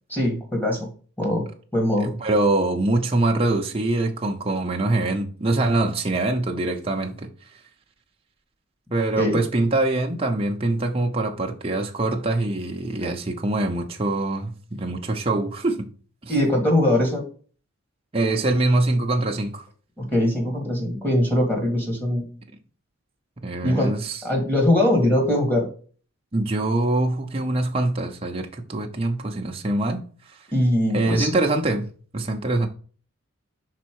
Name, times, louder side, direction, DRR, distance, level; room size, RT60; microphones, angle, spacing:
voice 1, 0.1-0.9 1.2-1.4 1.7-2.1 9.2-9.4 16.3-17.2 20.0-22.3 23.6-23.9 24.2-25.7 30.5-31.3, left 1 dB, 10° left, 1.6 m, -21 dB
voice 2, 2.0-7.3 8.9-15.9 18.1-19.7 23.4-24.2 26.3-30.0 30.9-31.9 32.1-32.7, right 2 dB, 25° right, 0.7 m, -24 dB
5.3 x 4.2 x 4.6 m
head